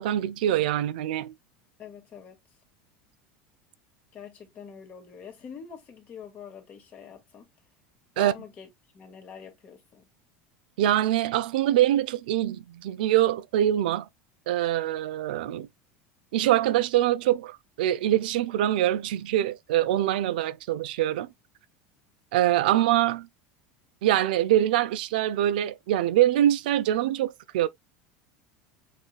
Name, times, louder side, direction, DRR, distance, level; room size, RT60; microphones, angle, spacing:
voice 1, 0.0-1.3 8.2-8.3 10.8-14.1 14.5-15.7 16.3-21.3 22.3-23.3 24.0-27.7, right 12 dB, 85° right, 0.5 m, -24 dB
voice 2, 1.8-2.4 4.1-7.5 8.1-8.7 8.9-10.0, left 7 dB, 35° left, 1.8 m, -44 dB
6.5 x 3.2 x 2.2 m
supercardioid pair, 130°, 5 cm